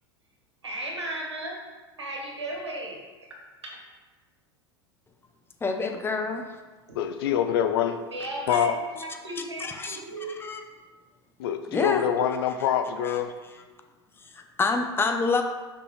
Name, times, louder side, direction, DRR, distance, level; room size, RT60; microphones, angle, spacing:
voice 1, 0.6-1.6 2.0-3.4 3.6-3.8 6.9-7.0 8.1-10.4, right 1 dB, 85° right, -1 dB, 1.6 m, -35 dB
voice 2, 5.6-6.5 7.3-7.4 9.4-10.0 10.4-10.6 11.7-12.0 13.0-13.2 14.2-15.4, left 4 dB, 15° left, 4 dB, 0.7 m, -27 dB
voice 3, 6.9-8.0 8.5-8.8 11.4-13.3, left 9 dB, 60° left, 7 dB, 0.6 m, -25 dB
6.9 x 5.4 x 3.2 m, 1.3 s
figure-of-eight pair, 80°, 14 cm